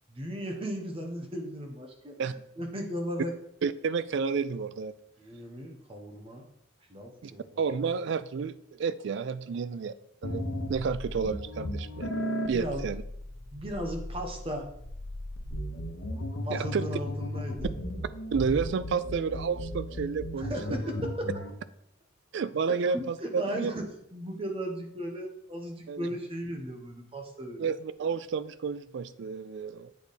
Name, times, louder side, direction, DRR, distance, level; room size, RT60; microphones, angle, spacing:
voice 1, 0.1-2.2 2.6-3.3 5.2-6.5 6.9-7.4 12.5-12.8 13.5-14.7 16.4-17.7 20.4-21.3 22.7-23.9 24.1-27.7, equal, 30° right, 3 dB, 0.9 m, -36 dB
voice 2, 3.6-4.9 7.2-7.3 7.6-9.9 10.2-12.1 12.5-13.0 16.5-16.8 18.3-20.8 22.3-23.7 25.9-26.1 27.6-29.9, right 5 dB, 60° right, 15 dB, 0.3 m, -31 dB
sound 1, 10.2-21.5, left 1 dB, 85° left, 1.0 m, -36 dB
8.3 x 3.4 x 4.1 m, 0.74 s
head